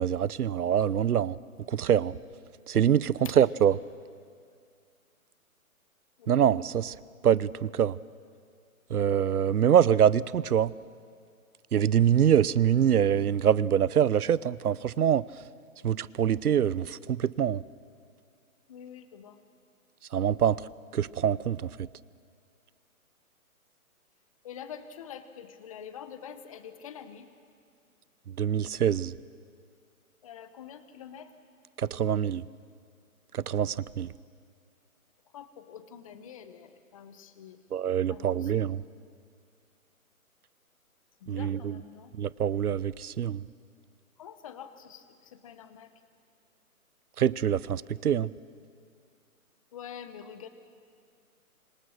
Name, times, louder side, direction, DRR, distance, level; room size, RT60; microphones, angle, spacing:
voice 1, 0.0-1.4 1.7-2.2 2.7-3.7 6.3-7.0 7.2-8.0 8.9-10.7 11.7-15.2 15.8-17.6 20.1-20.6 20.9-21.9 28.4-29.2 31.8-32.4 33.3-34.1 37.7-38.8 41.3-41.8 42.2-43.4 47.2-48.3, right 9 dB, 90° right, 21 dB, 0.8 m, -25 dB
voice 2, 6.2-6.5 18.7-19.4 24.4-27.3 30.2-31.3 35.3-37.6 38.1-38.6 39.0-39.1 41.2-42.1 44.2-45.9 49.7-50.5, left 8 dB, 25° left, 11 dB, 1.0 m, -46 dB
26.0 x 23.5 x 6.5 m, 2.2 s
hypercardioid pair, 160°, 44 cm